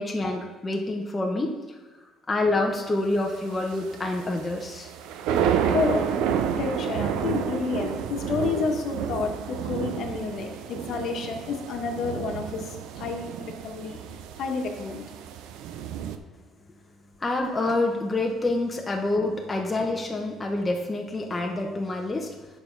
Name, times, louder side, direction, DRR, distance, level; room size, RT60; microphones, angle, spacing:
voice 1, 0.0-1.6 2.3-4.9 17.2-22.4, left 2 dB, 15° left, 1 dB, 0.9 m, -27 dB
sound 1, 3.1-16.2, right 8 dB, 90° right, 0.6 m, -30 dB
voice 2, 5.7-6.1 6.6-14.0 14.4-15.0, left 4 dB, 60° left, 2 dB, 1.2 m, -30 dB
8.6 x 5.6 x 4.6 m, 1.3 s
cardioid pair, 125°, 0 cm